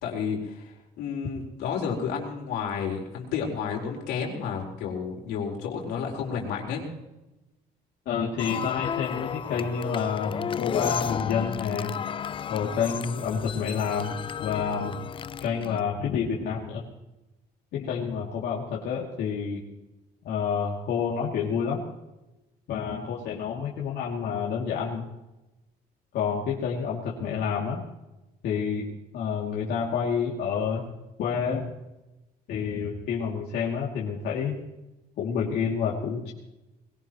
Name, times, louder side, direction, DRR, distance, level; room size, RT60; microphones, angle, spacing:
voice 1, 0.0-6.9, left 6 dB, 90° left, 0 dB, 4.2 m, -31 dB
voice 2, 8.1-11.9 12.5-14.1 14.4-14.9 15.4-16.8 17.7-19.6 20.2-21.8 22.7-25.1 26.1-27.8 28.4-28.8 29.1-30.8 31.2-31.7 32.5-34.6 35.2-36.3, left 6 dB, 70° left, -4 dB, 2.6 m, -28 dB
sound 1, 8.4-15.8, left 8 dB, 30° left, 0.4 m, -33 dB
21.0 x 18.0 x 3.1 m, 0.99 s
cardioid pair, 110°, 17 cm